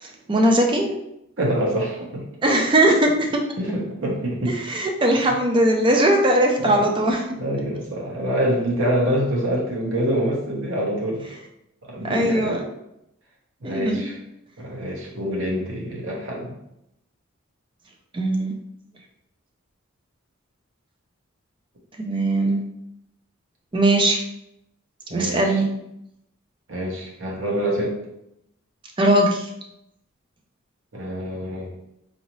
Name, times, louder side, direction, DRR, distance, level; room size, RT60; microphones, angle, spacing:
voice 1, 0.0-1.0 2.4-3.4 4.5-7.2 12.0-12.7 13.6-14.1 18.1-18.5 22.0-22.6 23.7-24.2 25.1-25.7 29.0-29.5, right 1 dB, 25° right, 1 dB, 0.4 m, -20 dB
voice 2, 1.4-2.2 3.6-4.6 6.6-6.9 7.4-11.3 11.8-12.6 13.6-14.1 14.6-16.6 25.1-25.6 26.7-28.0 30.9-31.7, equal, 70° right, -3 dB, 1.1 m, -26 dB
4.0 x 2.7 x 3.0 m, 0.81 s
head